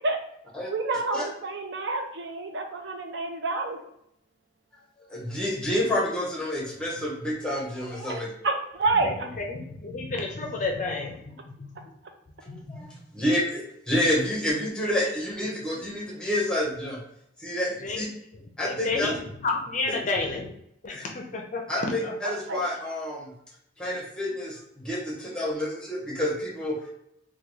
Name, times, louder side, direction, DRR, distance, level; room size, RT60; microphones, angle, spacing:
voice 1, 0.7-3.8 8.4-9.3 22.5-22.6, right 3 dB, 65° right, 4 dB, 0.4 m, -28 dB
voice 2, 5.1-8.3 12.4-17.0 17.4-18.1 18.6-19.1 19.9-20.0 20.9-21.1 21.7-23.3 23.8-26.9, left 1 dB, 5° left, -4 dB, 0.9 m, -29 dB
voice 3, 9.0-11.2 11.6-11.9 12.5-12.8 17.8-18.1 18.6-19.1 19.4-20.5 20.8-22.1, left 3 dB, 40° left, 2 dB, 0.4 m, -31 dB
3.4 x 2.2 x 3.0 m, 0.76 s
head